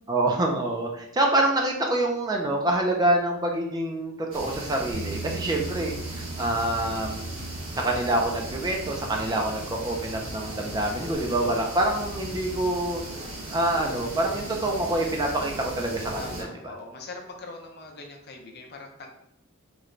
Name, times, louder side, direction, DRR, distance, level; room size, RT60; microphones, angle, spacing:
voice 1, 0.0-7.4 7.8-13.0 13.5-16.5, right 1 dB, 20° right, 1 dB, 0.3 m, -26 dB
sound 1, 4.3-16.4, right 1 dB, 90° right, 1.0 m, -37 dB
Bass guitar, 4.9-11.1, right 4 dB, 70° right, 0.6 m, -41 dB
voice 2, 16.1-19.1, left 3 dB, 50° left, 2 dB, 0.6 m, -42 dB
3.1 x 2.1 x 3.7 m, 0.77 s
head